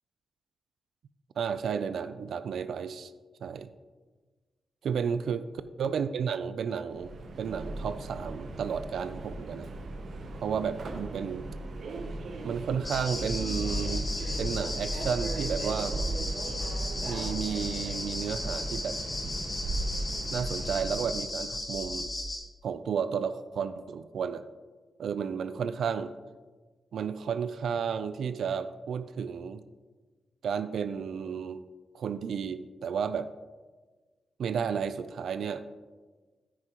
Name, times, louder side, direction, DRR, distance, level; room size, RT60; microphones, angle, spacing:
voice 1, 1.4-3.1 3.4-3.7 4.8-5.5 5.8-9.7 10.4-11.5 12.4-14.1 14.4-16.0 17.0-19.0 20.3-22.1 22.6-24.4 25.0-26.1 26.9-29.6 30.4-31.6 31.9-33.3 34.4-35.6, right 7 dB, 75° right, 12 dB, 0.3 m, -32 dB
Subway metro underground, 6.9-21.2, right 2 dB, 60° right, 0.8 m, -38 dB
sound 1, 12.8-22.4, left 1 dB, 30° left, 2.3 m, -34 dB
9.8 x 9.5 x 3.0 m, 1.3 s
wide cardioid pair, 145°, 0 cm